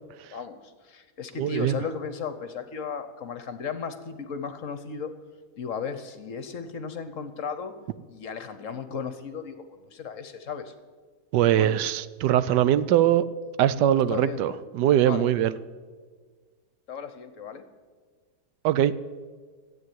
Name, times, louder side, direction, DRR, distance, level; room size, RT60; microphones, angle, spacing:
voice 1, 0.3-5.1 5.6-7.7 8.1-10.7 11.4-11.7 14.1-14.6 15.0-15.3 16.9-17.6, left 6 dB, 55° left, 1.1 m, -35 dB
voice 2, 1.4-1.7 11.3-13.2 13.6-15.5 18.6-18.9, right 11 dB, 85° right, 1.2 m, -22 dB
13.0 x 8.4 x 9.3 m
omnidirectional pair, 1.8 m